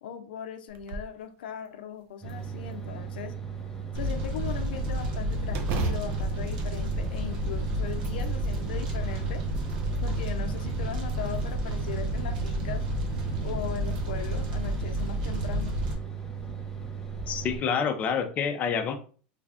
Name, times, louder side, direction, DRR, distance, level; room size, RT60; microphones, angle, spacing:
voice 1, 0.0-3.3 3.9-9.4 10.0-12.8 13.4-15.8, left 8 dB, 90° left, 7 dB, 0.5 m, -39 dB
sound 1, 0.7-1.2 1.6-1.7 2.3-3.1 5.5-7.5 7.9-8.6 9.3-10.1 11.0-11.7 13.2-13.3 13.8-14.0 14.5-14.6 15.6-15.9, right 3 dB, 50° right, 0.5 m, -37 dB
sound 2, 2.2-17.6, right 7 dB, 10° left, 1.0 m, -37 dB
Fire, 3.9-15.9, right 1 dB, 80° right, 1.0 m, -31 dB
voice 2, 17.3-18.9, left 6 dB, 30° left, 5 dB, 0.5 m, -27 dB
3.2 x 2.4 x 3.4 m, 0.42 s
supercardioid pair, 135°, 5 cm